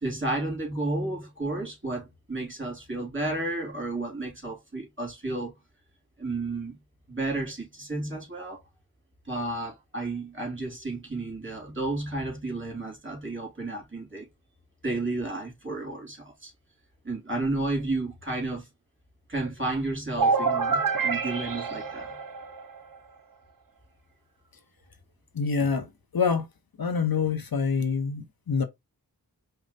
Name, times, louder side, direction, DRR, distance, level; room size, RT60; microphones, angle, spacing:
voice 1, 0.0-5.5 6.2-6.8 7.1-8.6 9.3-14.3 14.8-16.5 17.0-18.7 19.3-22.2, right 2 dB, 30° right, 2.7 m, -32 dB
sound 1, 20.2-23.0, right 5 dB, 60° right, 0.7 m, -27 dB
voice 2, 25.3-25.9 26.1-26.5 26.8-28.6, left 5 dB, 65° left, 0.8 m, -26 dB
5.1 x 2.2 x 4.0 m
wide cardioid pair, 50°, 38 cm